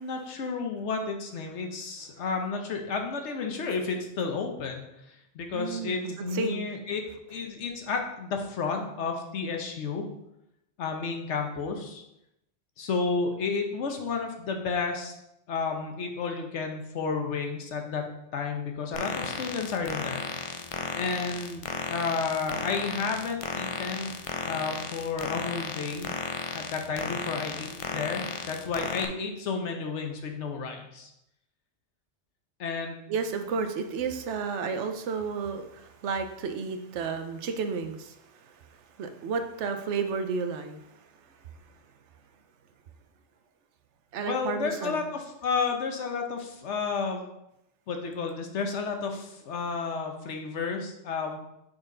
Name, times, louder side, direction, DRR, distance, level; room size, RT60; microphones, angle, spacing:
voice 1, 0.0-10.0 10.8-12.0 12.8-15.1 15.5-20.2 20.9-24.1 24.4-26.1 26.5-31.1 32.6-33.1 44.2-47.2 47.9-51.4, left 5 dB, 80° left, 4 dB, 1.2 m, -32 dB
voice 2, 5.5-6.7 33.1-41.1 44.1-45.1, right 5 dB, 80° right, 7 dB, 0.9 m, -32 dB
sound 1, 18.9-29.1, left 5 dB, 60° left, 0.3 m, -34 dB
6.0 x 4.2 x 3.8 m, 0.84 s
omnidirectional pair, 1.2 m